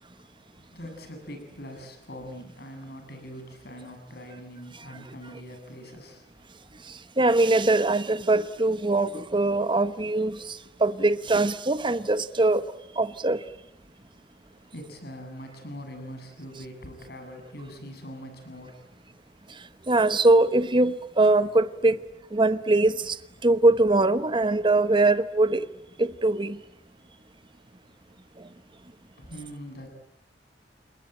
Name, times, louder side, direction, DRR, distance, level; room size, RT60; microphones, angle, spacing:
voice 1, 0.6-6.3 14.7-18.8 29.2-29.9, equal, 65° left, 7.6 m, -42 dB
voice 2, 6.9-12.6 12.9-13.4 19.5-19.6 19.9-22.0 22.3-25.7 26.0-26.6 28.4-28.5, right 2 dB, 30° right, 1.0 m, -22 dB
30.0 x 21.0 x 9.0 m
head